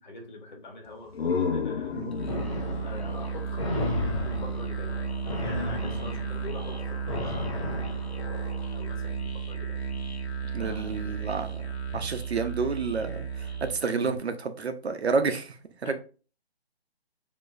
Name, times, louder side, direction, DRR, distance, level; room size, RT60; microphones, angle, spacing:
voice 1, 0.0-2.1 2.8-3.9 4.2-5.1 5.4-7.8 8.7-9.8 10.5-11.0 15.8-15.9, left 2 dB, 45° left, 1.5 m, -44 dB
sound 1, 0.9-4.5, left 6 dB, 70° left, 0.7 m, -33 dB
Musical instrument, 2.1-13.8, right 5 dB, 85° left, 1.0 m, -34 dB
sound 2, 2.3-8.7, left 2 dB, 30° left, 1.0 m, -34 dB
voice 2, 10.5-15.6 15.8-15.9, right 4 dB, 90° right, 0.9 m, -30 dB
6.7 x 3.0 x 2.6 m
hypercardioid pair, 170°, 31 cm